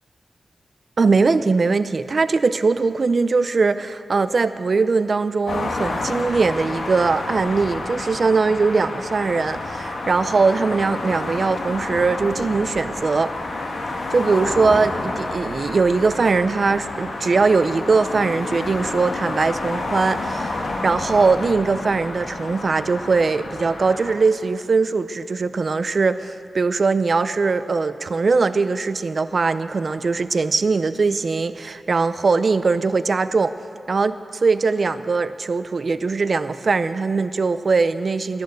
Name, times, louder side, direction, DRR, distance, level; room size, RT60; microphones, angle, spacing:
voice 1, 1.0-13.3 14.1-33.5 33.9-38.4, right 4 dB, 55° right, 13 dB, 0.5 m, -21 dB
sound 1, 5.5-24.1, left 2 dB, 85° left, 1.7 m, -29 dB
11.5 x 11.0 x 8.0 m, 2.4 s
wide cardioid pair, 75°, 0 cm